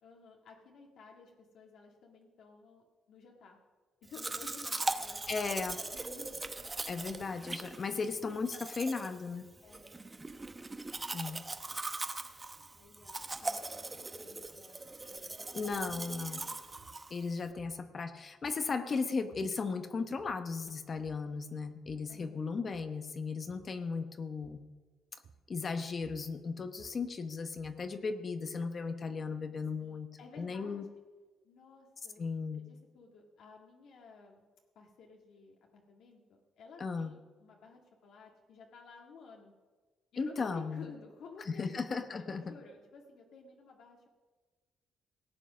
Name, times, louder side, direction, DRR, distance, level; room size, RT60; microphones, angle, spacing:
voice 1, 0.0-3.6 4.0-6.5 9.6-10.6 11.5-11.6 12.7-16.6 22.1-22.4 29.8-30.9 31.4-32.2 32.5-34.4 34.8-39.5 40.1-41.8 42.1-44.1, left 4 dB, 75° left, 0 dB, 1.8 m, -54 dB
Domestic sounds home sounds, 4.1-17.5, right 2 dB, 20° right, 0.9 m, -40 dB
voice 2, 5.3-5.8 6.9-9.5 11.1-11.4 15.5-16.4 17.1-24.6 25.5-30.1 30.4-30.8 32.2-32.6 36.8-37.1 40.2-40.8 41.6-42.4, left 4 dB, 40° left, 8 dB, 1.0 m, -36 dB
sound 1, 15.9-16.1 16.8-17.1 17.6-18.1 18.4-18.9 19.3-19.6 20.0-20.5 21.0-21.3 21.6-22.2 22.6-23.0 23.5-23.8 24.4-24.8 25.2-25.6 25.9-27.9, right 6 dB, 75° right, 2.4 m, -60 dB
18.0 x 8.0 x 6.3 m, 1.3 s
cardioid pair, 90°, 0 cm